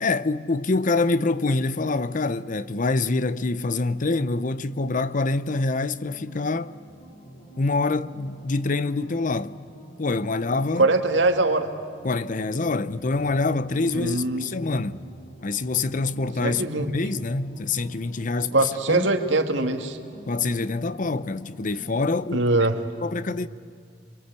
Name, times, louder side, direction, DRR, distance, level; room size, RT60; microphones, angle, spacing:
voice 1, 0.0-6.8 7.6-9.6 10.0-10.9 12.0-15.0 15.4-16.6 16.9-19.1 20.3-22.5 23.0-23.5, left 3 dB, 45° left, 0.7 m, -25 dB
sound 1, 6.1-22.1, equal, 65° left, 6.4 m, -47 dB
voice 2, 10.8-11.7 13.9-14.5 16.4-16.9 18.5-20.0 22.3-22.8, right 2 dB, 85° right, 2.0 m, -22 dB
26.5 x 24.0 x 8.3 m
head